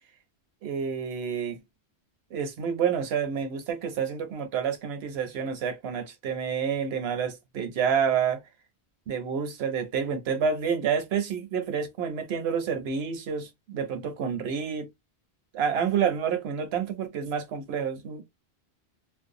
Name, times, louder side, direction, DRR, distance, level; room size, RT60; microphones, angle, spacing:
voice 1, 0.6-1.6 2.3-8.4 9.1-14.9 15.5-18.2, right 7 dB, 75° right, 0.9 m, -29 dB
2.6 x 2.1 x 2.6 m
omnidirectional pair, 1.1 m